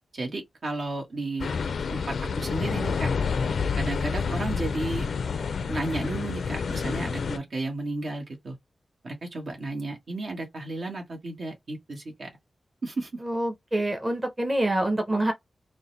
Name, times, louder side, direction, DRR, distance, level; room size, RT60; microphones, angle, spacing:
voice 1, 0.1-1.5 1.9-3.1 3.8-5.1 5.7-8.6 9.0-12.3 12.8-13.1, right 2 dB, 60° right, 1.4 m, -33 dB
sound 1, 1.4-7.4, left 5 dB, 75° left, 0.4 m, -28 dB
voice 2, 13.2-15.3, right 1 dB, 20° right, 1.0 m, -26 dB
4.0 x 2.2 x 3.9 m
wide cardioid pair, 110°, 0 cm